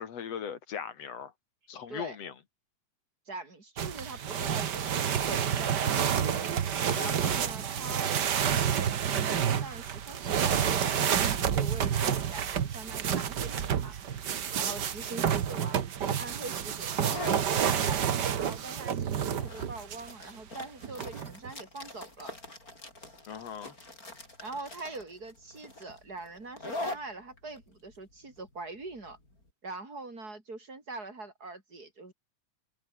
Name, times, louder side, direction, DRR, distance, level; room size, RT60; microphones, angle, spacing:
voice 1, 0.0-1.3 1.7-2.4 6.8-7.5 23.3-23.8, left 7 dB, 55° left, 2.7 m, -39 dB
voice 2, 1.7-2.2 3.3-6.5 6.9-14.0 14.5-15.8 16.2-18.0 18.3-22.4 24.4-29.2 29.6-32.1, right 3 dB, 25° right, 5.2 m, -43 dB
sound 1, 3.8-20.1 20.8-21.5, right 8 dB, 60° right, 1.1 m, -29 dB
sound 2, 16.0-29.4, left 2 dB, 25° left, 7.8 m, -43 dB
omnidirectional pair, 3.8 m